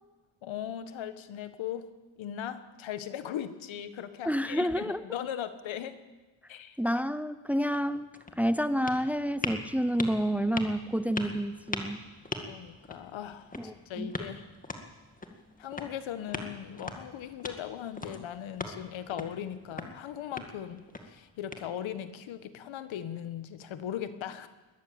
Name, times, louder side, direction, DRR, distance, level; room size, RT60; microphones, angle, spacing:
voice 1, 0.4-1.9 2.2-6.0 6.5-6.8 12.4-14.5 15.6-24.5, left 10 dB, 85° left, 11 dB, 1.7 m, -38 dB
voice 2, 4.2-5.0 6.8-8.1 8.4-12.0 13.5-14.1, equal, 5° right, 13 dB, 0.6 m, -29 dB
sound 1, 7.6-22.1, left 2 dB, 20° left, 2.0 m, -42 dB
21.5 x 13.5 x 8.9 m, 1.2 s
cardioid pair, 130°, 46 cm